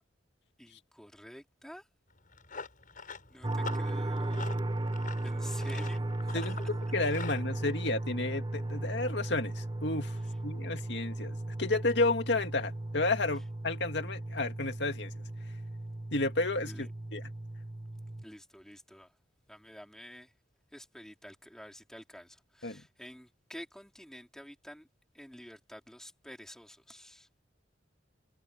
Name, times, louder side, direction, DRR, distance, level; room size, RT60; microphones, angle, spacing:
voice 1, 0.6-1.9 3.0-4.7 5.2-6.6 16.6-16.9 18.2-19.1 19.5-20.3 20.7-24.9 25.1-27.3, equal, 5° left, 4.8 m, -49 dB
Run, 2.1-7.4, left 5 dB, 45° left, 7.7 m, -45 dB
sound 1, 3.4-18.2, right 1 dB, 25° right, 0.6 m, -36 dB
voice 2, 6.3-10.2 10.4-15.1 16.1-17.2 22.6-22.8, left 2 dB, 65° left, 2.3 m, -32 dB
head